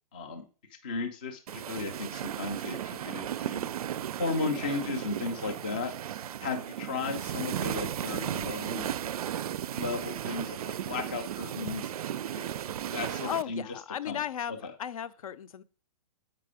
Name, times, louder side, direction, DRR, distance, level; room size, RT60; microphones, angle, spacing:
voice 1, 0.1-0.4 0.8-1.4 1.7-5.9 6.4-8.9 9.7-11.9 12.3-13.6 14.1-14.2 14.6-14.7, left 4 dB, 15° left, 0.3 m, -35 dB
sound 1, 1.5-13.4, right 10 dB, 70° right, 0.4 m, -35 dB
voice 2, 13.0-15.6, left 10 dB, 60° left, 0.6 m, -36 dB
7.5 x 4.9 x 4.9 m
hypercardioid pair, 180°, 20 cm